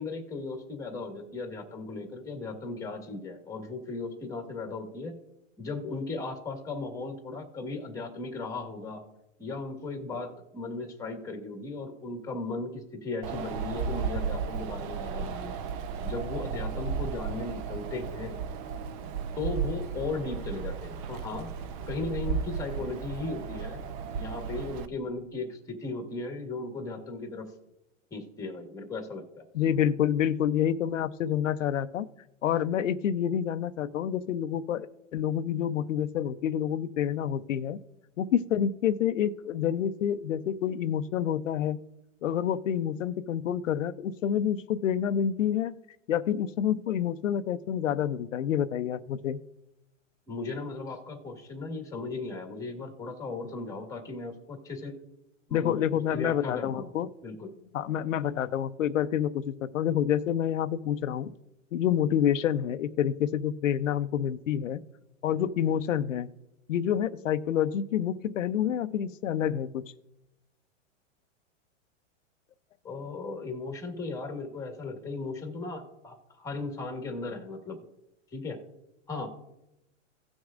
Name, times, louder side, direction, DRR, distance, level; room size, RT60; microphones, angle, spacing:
voice 1, 0.0-5.2 5.6-9.0 9.4-15.6 16.0-18.4 19.4-21.5 21.9-23.8 24.1-27.5 28.1-29.4 50.3-55.0 55.5-55.8 56.1-56.9 57.2-57.5 72.8-77.8 78.3-78.6 79.1-79.3, left 3 dB, 10° left, 4 dB, 1.6 m, -36 dB
Wind, 13.2-24.9, right 6 dB, 30° right, 0.5 m, -34 dB
voice 2, 29.5-32.1 32.4-34.9 35.1-37.8 38.2-41.8 42.2-45.8 46.1-49.4 55.5-57.1 57.7-61.3 61.7-64.8 65.2-66.3 66.7-69.8, left 9 dB, 90° left, 10 dB, 0.7 m, -28 dB
17.5 x 6.2 x 2.5 m, 0.88 s
hypercardioid pair, 140°, 37 cm